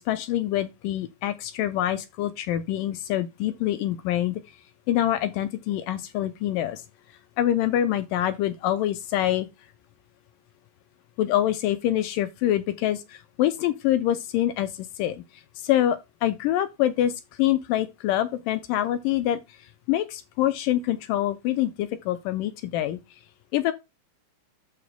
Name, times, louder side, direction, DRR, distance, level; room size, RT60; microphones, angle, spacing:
voice 1, 0.0-4.4 4.9-6.8 7.4-9.5 11.2-15.2 15.6-19.4 19.9-23.0 23.5-23.7, left 12 dB, 80° left, 2.0 m, -25 dB
13.0 x 5.0 x 2.3 m
omnidirectional pair, 4.4 m